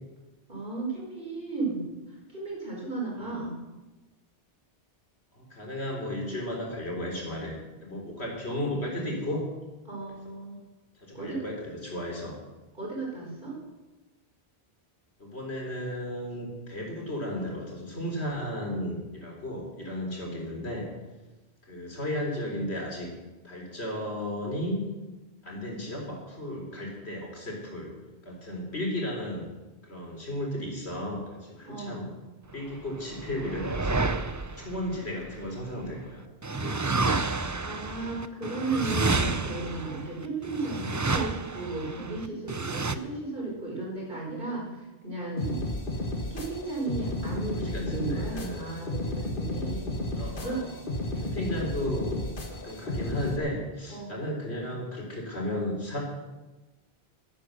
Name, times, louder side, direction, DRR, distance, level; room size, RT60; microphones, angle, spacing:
voice 1, 0.5-1.9 2.3-3.6 9.9-10.6 11.1-11.4 12.7-13.6 31.6-32.1 37.6-45.6 46.3-50.0 50.4-50.6 53.9-54.3, right 3 dB, 55° right, -3 dB, 5.1 m, -34 dB
voice 2, 5.3-9.4 11.0-12.4 15.2-20.9 21.7-23.1 23.4-24.8 25.4-28.0 28.2-29.5 29.8-32.1 32.5-34.1 34.4-36.2 36.6-37.2 40.8-41.0 47.5-48.8 50.2-50.8 51.2-52.2 52.5-56.0, left 1 dB, 85° left, 0 dB, 4.2 m, -34 dB
sound 1, 32.8-35.9 36.4-43.0, right 3 dB, 25° right, 0.5 m, -30 dB
noisy dubstep loop, 45.4-53.4, left 1 dB, 55° left, 1.8 m, -33 dB
12.5 x 12.0 x 6.7 m, 1.1 s
omnidirectional pair, 1.1 m